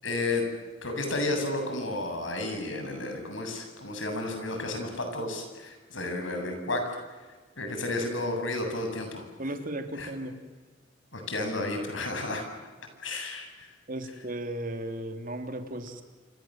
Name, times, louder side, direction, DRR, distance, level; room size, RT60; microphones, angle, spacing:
voice 1, 0.0-0.5 0.8-7.0 7.6-9.2 10.0-10.1 11.1-12.4 13.0-13.7, left 2 dB, 85° left, 5 dB, 7.7 m, -32 dB
voice 2, 9.4-10.4 13.9-16.0, right 1 dB, 45° right, 6 dB, 3.4 m, -35 dB
28.5 x 25.5 x 7.8 m, 1.4 s
head